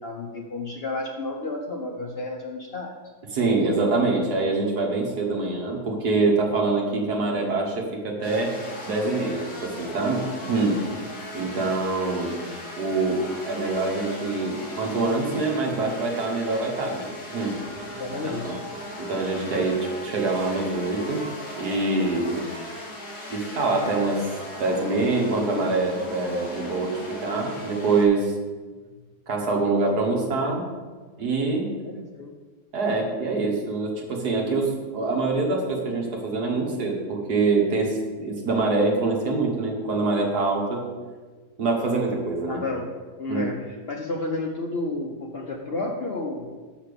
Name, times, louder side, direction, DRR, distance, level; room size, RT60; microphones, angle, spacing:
voice 1, 0.0-3.0 17.9-18.6 31.8-32.3 42.5-42.9 43.2-46.5, left 2 dB, 60° left, 1 dB, 0.6 m, -31 dB
voice 2, 3.3-8.5 8.8-10.8 11.3-12.4 12.8-17.9 18.4-18.6 19.0-21.2 21.6-22.4 23.3-24.3 24.6-28.3 29.3-30.6 31.2-31.7 32.7-40.8 41.6-42.6 43.3-43.4, right 3 dB, 65° right, 0 dB, 1.9 m, -25 dB
sound 1, 8.2-28.1, left 1 dB, 40° left, 1.8 m, -38 dB
5.8 x 5.8 x 6.8 m, 1.4 s
omnidirectional pair, 1.9 m